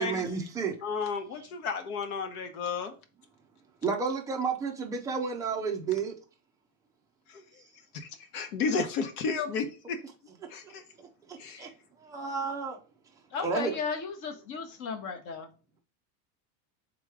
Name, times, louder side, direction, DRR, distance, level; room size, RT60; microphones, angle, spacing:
voice 1, 0.0-0.8 3.8-6.1 10.6-10.7 11.0-11.7 12.0-12.8 13.4-13.8, right 5 dB, 10° right, 0.4 m, -31 dB
voice 2, 0.8-2.9 7.3-7.4 7.9-10.0 10.5-10.8 11.4-11.7, left 5 dB, 70° left, 1.0 m, -32 dB
voice 3, 13.3-15.5, left 5 dB, 40° left, 0.8 m, -35 dB
3.7 x 3.0 x 4.8 m
supercardioid pair, 145°, 47 cm